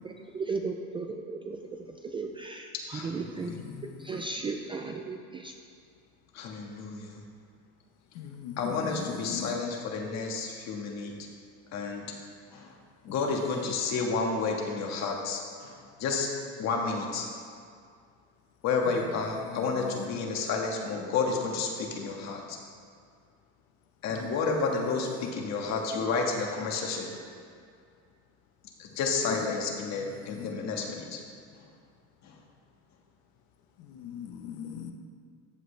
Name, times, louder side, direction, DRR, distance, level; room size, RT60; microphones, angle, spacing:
voice 1, 0.0-3.5 4.0-5.5, right 4 dB, 15° right, 3 dB, 0.3 m, -36 dB
voice 2, 2.9-3.6 6.3-7.2 8.6-11.1 11.7-12.0 12.5-12.7 13.0-16.3 16.6-17.3 18.6-22.6 24.0-27.2 28.8-31.2 32.2-32.4, left 4 dB, 50° left, 1 dB, 1.6 m, -31 dB
voice 3, 3.5-4.3 8.1-9.6 19.5-20.1 24.1-24.3 30.3-30.6 33.8-34.9, left 8 dB, 70° left, 4 dB, 1.0 m, -40 dB
14.0 x 7.9 x 3.3 m, 2.2 s
cardioid pair, 140°, 36 cm